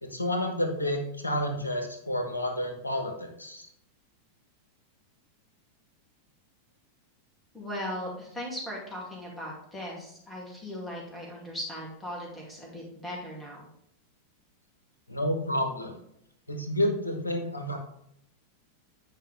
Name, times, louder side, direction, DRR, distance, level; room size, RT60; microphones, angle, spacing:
voice 1, 0.0-3.7 15.1-16.0 16.5-17.8, left 1 dB, 80° left, 4 dB, 1.2 m, -30 dB
voice 2, 7.5-13.6, left 1 dB, 10° left, -3 dB, 2.4 m, -38 dB
9.0 x 4.8 x 3.3 m, 0.75 s
figure-of-eight pair, 90°, 0 cm